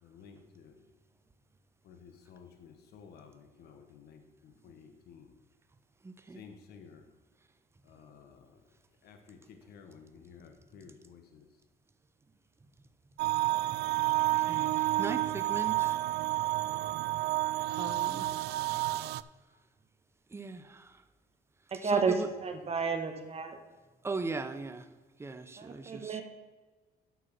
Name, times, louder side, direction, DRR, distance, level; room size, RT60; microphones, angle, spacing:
voice 1, 0.0-0.8 1.8-5.3 6.3-7.0 7.8-8.6 9.0-11.5, left 6 dB, 70° left, 1.2 m, -54 dB
voice 2, 6.0-6.5 14.0-16.0 17.8-18.3 20.3-21.0 21.8-22.3 24.0-24.9 25.2-26.2, right 3 dB, 15° right, 0.7 m, -39 dB
sound 1, 13.2-19.2, right 17 dB, 75° right, 0.4 m, -30 dB
voice 3, 21.7-23.6 25.6-26.2, right 5 dB, 35° right, 1.6 m, -31 dB
9.5 x 6.1 x 6.1 m
cardioid pair, 110°, 17 cm